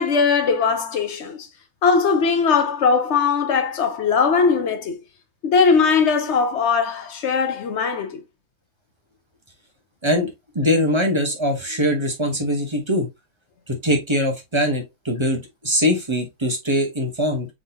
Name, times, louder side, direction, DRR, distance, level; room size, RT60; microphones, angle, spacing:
voice 1, 0.0-1.5 1.8-5.0 5.4-8.2, left 5 dB, 60° left, 0.9 m, -20 dB
voice 2, 10.5-13.1 13.7-17.5, equal, 25° right, 0.9 m, -22 dB
4.0 x 3.6 x 2.7 m
omnidirectional pair, 1.4 m